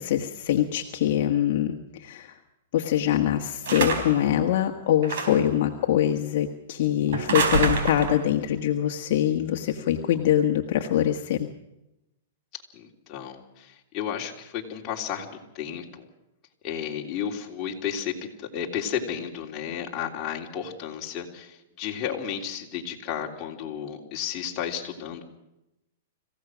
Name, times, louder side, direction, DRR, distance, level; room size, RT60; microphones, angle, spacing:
voice 1, 0.0-2.3 2.7-11.5, left 11 dB, 55° left, 3 dB, 1.5 m, -24 dB
sound 1, 3.6-4.3 5.0-5.5 7.1-8.2, right 4 dB, 70° right, 4.5 m, -26 dB
voice 2, 12.7-16.1 16.6-18.1 18.4-25.2, left 8 dB, 30° left, -1 dB, 3.2 m, -33 dB
26.0 x 16.0 x 6.3 m, 0.91 s
hypercardioid pair, 150°, 0 cm